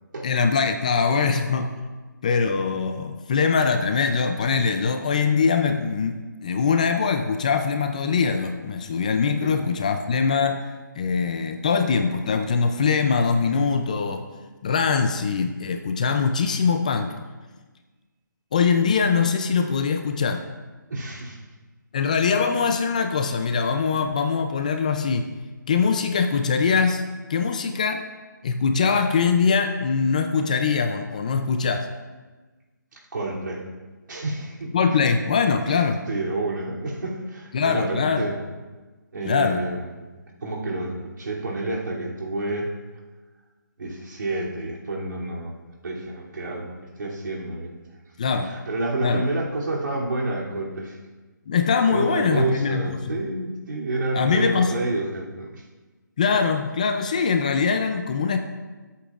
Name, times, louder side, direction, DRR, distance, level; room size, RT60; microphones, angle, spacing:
voice 1, 0.2-1.7 2.2-10.7 11.0-14.2 14.6-17.1 18.5-20.4 21.9-25.3 25.7-27.0 27.3-28.0 28.4-31.9 34.7-36.0 37.5-38.3 39.2-39.6 48.2-48.5 49.0-49.2 51.5-53.2 54.1-54.7 56.2-58.4, left 5 dB, 20° left, 6 dB, 0.4 m, -22 dB
voice 2, 20.9-21.4 32.9-33.6 34.1-34.7 35.7-38.4 39.1-39.9 40.4-42.7 43.8-45.5 45.8-47.7 48.4-51.0 51.9-55.6, right 2 dB, 70° right, -3 dB, 2.8 m, -29 dB
18.5 x 8.4 x 2.4 m, 1.3 s
hypercardioid pair, 170°, 11 cm